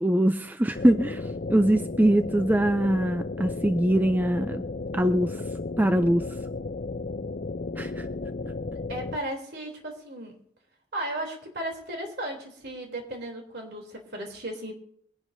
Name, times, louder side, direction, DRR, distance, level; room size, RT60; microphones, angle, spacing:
voice 1, 0.0-4.6 4.9-5.4 5.8-6.2 7.8-8.1, right 1 dB, 10° right, 9 dB, 0.4 m, -23 dB
sound 1, 0.7-9.2, left 3 dB, 45° left, 0.6 m, -34 dB
voice 2, 8.9-10.4 10.9-14.7, right 1 dB, 55° right, 2 dB, 3.1 m, -35 dB
23.5 x 10.5 x 2.7 m, 0.68 s
head